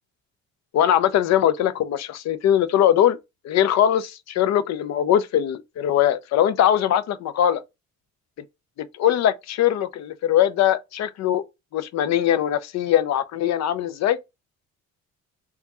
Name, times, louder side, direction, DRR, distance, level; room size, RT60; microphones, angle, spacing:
voice 1, 0.7-3.2 3.4-7.6 8.8-11.4 11.7-14.2, left 10 dB, 60° left, 0.5 m, -21 dB
3.4 x 2.4 x 4.1 m
cardioid pair, 135°, 31 cm